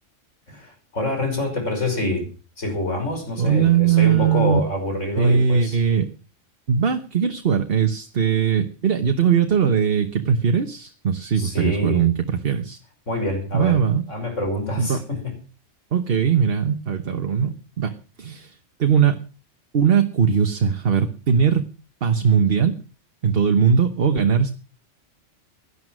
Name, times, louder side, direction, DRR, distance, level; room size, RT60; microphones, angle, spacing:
voice 1, 0.5-2.3 2.6-5.8 11.4-12.0 13.1-13.8 14.1-15.4, left 1 dB, 85° left, 5 dB, 6.2 m, -26 dB
voice 2, 3.4-4.6 5.2-6.1 6.7-12.8 13.5-14.0 14.8-15.0 15.9-19.2 19.7-21.6 22.0-22.8 23.2-24.5, right 7 dB, 55° right, 7 dB, 1.3 m, -20 dB
17.0 x 11.5 x 6.2 m, 0.37 s
omnidirectional pair, 1.2 m